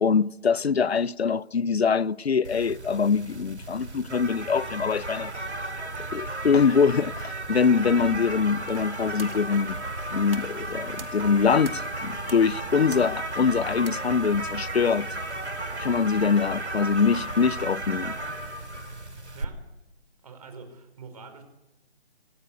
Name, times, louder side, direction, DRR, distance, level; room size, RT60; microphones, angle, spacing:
voice 1, 0.0-5.3 6.1-9.8 10.1-15.1 15.8-18.1, left 5 dB, 70° left, 0.8 m, -23 dB
sound 1, 2.4-19.4, right 2 dB, 85° right, 2.9 m, -34 dB
sound 2, 8.7-15.5, right 4 dB, 55° right, 2.3 m, -48 dB
voice 2, 19.3-19.7 20.2-21.4, right 4 dB, 35° right, 4.8 m, -45 dB
26.5 x 16.0 x 8.2 m
figure-of-eight pair, 160°, 33 cm